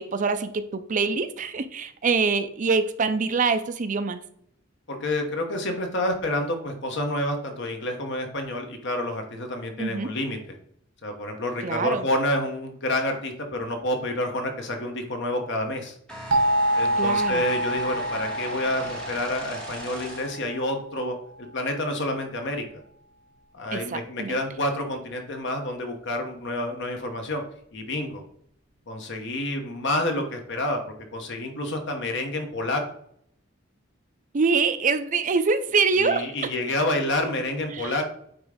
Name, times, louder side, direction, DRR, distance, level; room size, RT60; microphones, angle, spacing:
voice 1, 0.0-4.2 9.8-10.1 11.6-12.1 17.0-17.4 23.7-24.4 34.3-36.3 37.7-37.9, right 4 dB, 40° right, 11 dB, 0.5 m, -25 dB
voice 2, 4.9-10.6 11.0-15.9 16.7-21.2 21.5-22.6 23.5-27.4 27.7-28.2 28.9-30.8 31.1-32.8 36.0-38.0, left 1 dB, 65° left, 4 dB, 1.3 m, -28 dB
sound 1, 16.1-20.5, equal, 5° left, 1.9 m, -39 dB
sound 2, 16.3-21.0, right 1 dB, 90° right, 1.2 m, -27 dB
9.0 x 3.2 x 5.0 m, 0.68 s
head